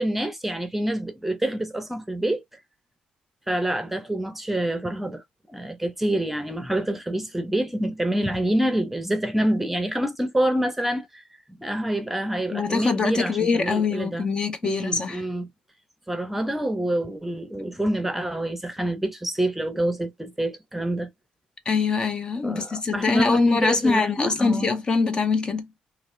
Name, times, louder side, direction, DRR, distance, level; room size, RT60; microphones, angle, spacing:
voice 1, 0.0-2.4 3.5-11.2 11.5-14.3 14.6-15.5 16.1-21.1 22.4-24.7, right 1 dB, 5° right, 0.7 m, -27 dB
voice 2, 12.5-15.2 21.7-25.7, left 4 dB, 35° left, 0.7 m, -23 dB
2.7 x 2.4 x 3.2 m
cardioid pair, 90°, 3 cm